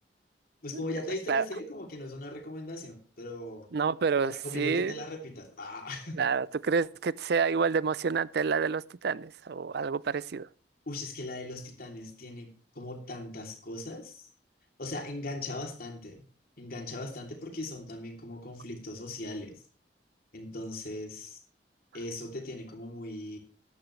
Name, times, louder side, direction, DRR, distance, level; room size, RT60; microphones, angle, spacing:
voice 1, 0.6-3.7 4.2-6.2 10.9-12.5 12.7-14.3 14.8-16.2 16.6-19.6 20.3-21.4 21.9-23.4, left 1 dB, 55° left, 3.1 m, -39 dB
voice 2, 3.7-4.9 6.1-10.5, right 5 dB, 65° right, 0.5 m, -28 dB
14.0 x 11.0 x 3.2 m
head